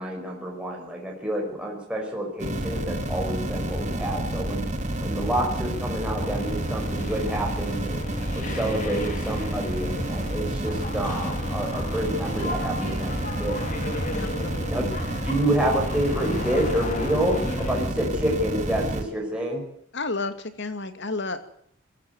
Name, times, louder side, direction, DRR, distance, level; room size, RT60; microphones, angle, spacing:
voice 1, 0.0-4.6 5.0-8.0 8.3-13.1 13.4-13.6 14.7-14.9 15.2-19.6, right 1 dB, 5° right, -1 dB, 5.3 m, -28 dB
sound 1, 2.4-19.0, right 1 dB, 35° right, 3.0 m, -29 dB
sound 2, 6.2-17.9, left 2 dB, 35° left, 3.0 m, -36 dB
voice 2, 14.1-15.0 19.9-21.4, left 3 dB, 55° left, 10 dB, 2.4 m, -32 dB
21.5 x 15.0 x 9.4 m, 0.68 s
head